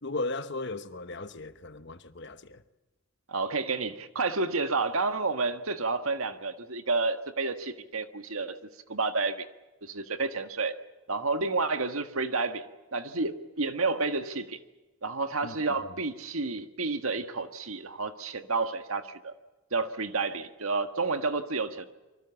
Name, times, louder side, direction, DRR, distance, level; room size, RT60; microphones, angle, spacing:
voice 1, 0.0-2.6 15.4-15.6, left 2 dB, 55° left, 1.1 m, -36 dB
voice 2, 3.3-8.6 8.9-9.4 9.8-10.7 11.1-12.6 12.9-14.6 15.0-19.3 19.7-21.9, right 3 dB, 80° right, 1.7 m, -30 dB
26.0 x 24.0 x 7.2 m
head